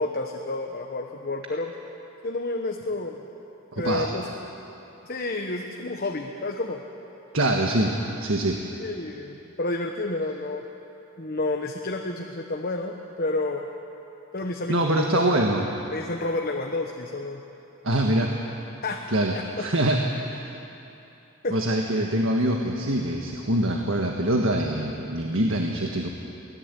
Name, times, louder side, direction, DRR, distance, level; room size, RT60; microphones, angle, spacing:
voice 1, 0.0-1.7 2.2-3.2 3.7-4.3 5.0-6.8 8.8-10.6 11.2-13.7 14.3-15.2 15.9-17.4 18.8-19.1 19.3-19.7 21.4-21.5, left 2 dB, 45° left, 2 dB, 1.2 m, -30 dB
voice 2, 3.7-4.1 7.3-7.9 8.2-8.6 14.7-15.7 17.8-18.3 19.1-20.0 20.3-20.5 21.5-26.1, right 1 dB, 70° right, 1 dB, 1.6 m, -24 dB
24.0 x 18.0 x 8.4 m, 2.9 s
head